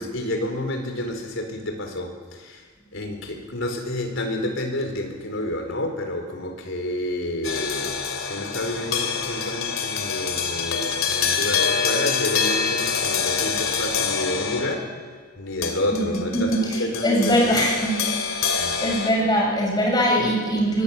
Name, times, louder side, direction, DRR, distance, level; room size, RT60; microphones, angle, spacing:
voice 1, 0.0-14.9 15.4-17.6 18.6-18.8, left 1 dB, 65° left, 3 dB, 4.4 m, -29 dB
sound 1, 7.4-14.9 15.6-19.1, left 6 dB, 85° left, 2.8 m, -26 dB
voice 2, 15.9-16.7 17.0-18.1 18.4-20.8, equal, 20° left, -1 dB, 7.3 m, -22 dB
23.5 x 18.0 x 8.5 m, 1.5 s
head